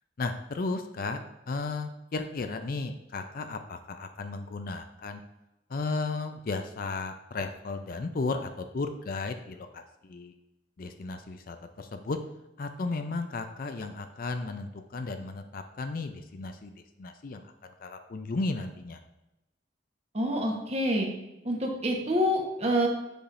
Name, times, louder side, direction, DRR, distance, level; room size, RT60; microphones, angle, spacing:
voice 1, 0.2-1.2 1.5-5.2 5.7-10.3 10.8-12.2 12.6-17.4 17.8-19.0, left 3 dB, 50° left, 7 dB, 0.4 m, -34 dB
voice 2, 20.1-21.1 21.4-22.9, equal, 35° right, 0 dB, 1.2 m, -27 dB
6.8 x 5.7 x 2.6 m, 0.95 s
head